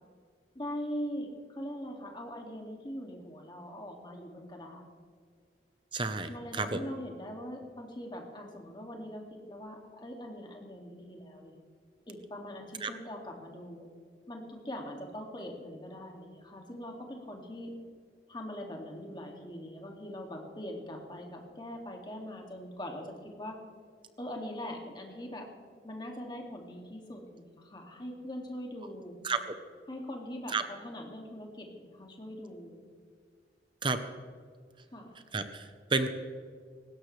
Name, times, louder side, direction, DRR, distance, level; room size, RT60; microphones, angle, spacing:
voice 1, 0.5-4.8 6.3-11.6 12.1-13.9 14.3-17.7 18.3-23.6 24.2-25.5 25.8-29.2 29.9-32.8 34.9-35.2, equal, 25° left, 1 dB, 2.3 m, -42 dB
voice 2, 5.9-6.8 12.8-12.9 29.2-29.5 30.5-30.6 33.8-34.0 35.3-36.1, right 4 dB, 30° right, 9 dB, 0.8 m, -31 dB
19.0 x 17.0 x 3.3 m, 2.1 s
head